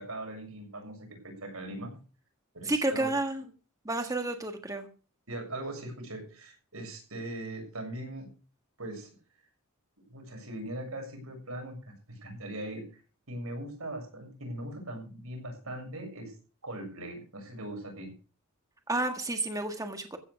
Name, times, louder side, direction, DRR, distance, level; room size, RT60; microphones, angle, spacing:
voice 1, 0.0-2.0 2.5-3.1 5.3-8.3 8.8-9.1 10.1-12.8 13.3-16.3 16.6-18.1, right 1 dB, 85° right, 3 dB, 6.9 m, -40 dB
voice 2, 2.6-3.4 3.8-4.9 18.9-20.2, right 2 dB, 15° right, 6 dB, 1.6 m, -30 dB
15.0 x 8.9 x 6.2 m, 0.36 s
head